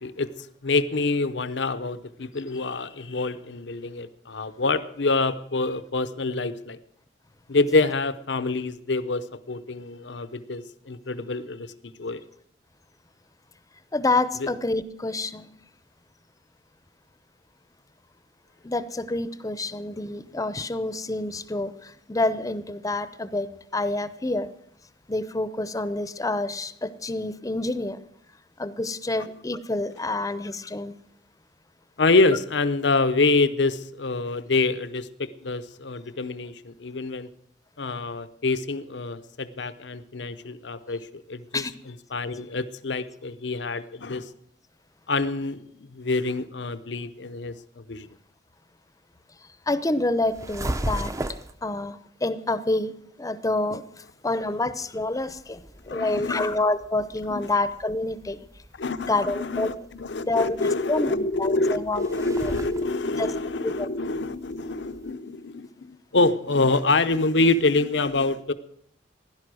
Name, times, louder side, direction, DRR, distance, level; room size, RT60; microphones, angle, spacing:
voice 1, 0.0-6.8 7.5-12.2 14.4-14.5 32.0-37.3 37.8-44.3 45.1-48.1 55.9-56.5 57.3-57.5 58.8-68.5, left 3 dB, 80° left, 0.8 m, -26 dB
voice 2, 13.9-15.5 18.6-23.5 23.7-24.5 25.1-28.0 28.6-30.9 41.5-41.7 49.7-51.1 51.6-52.9 53.2-53.8 54.2-58.5 59.1-59.7 60.2-62.1 62.4-62.5 63.2-63.3 63.6-63.9, left 2 dB, 20° left, 0.7 m, -27 dB
sound 1, 50.2-51.6 55.0-65.1, right 1 dB, 20° right, 0.6 m, -37 dB
16.5 x 11.5 x 6.3 m
head